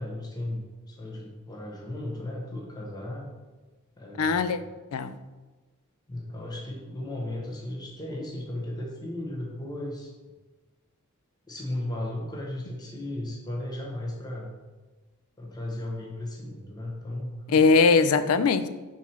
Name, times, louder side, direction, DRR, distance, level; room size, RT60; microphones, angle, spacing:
voice 1, 0.0-3.3 4.0-4.7 6.1-10.1 11.5-14.5 15.4-17.6, left 1 dB, 20° left, -2 dB, 0.9 m, -35 dB
voice 2, 4.2-4.6 4.9-5.1 17.5-18.7, left 4 dB, 80° left, 12 dB, 0.4 m, -20 dB
4.6 x 4.2 x 5.6 m, 1.2 s
head